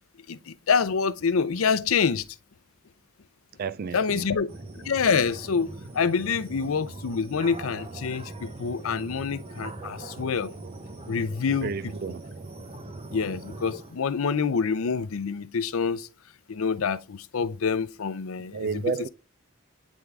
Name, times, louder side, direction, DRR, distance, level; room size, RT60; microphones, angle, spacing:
voice 1, 0.3-2.2 3.9-4.5 4.8-10.5 11.1-11.7 13.1-16.1 16.5-18.7, left 5 dB, 80° left, 0.5 m, -26 dB
voice 2, 3.6-4.2 11.6-12.2 18.5-19.1, right 5 dB, 45° right, 0.3 m, -31 dB
sound 1, 4.5-14.0, right 2 dB, 30° right, 0.8 m, -41 dB
9.4 x 3.6 x 3.3 m
head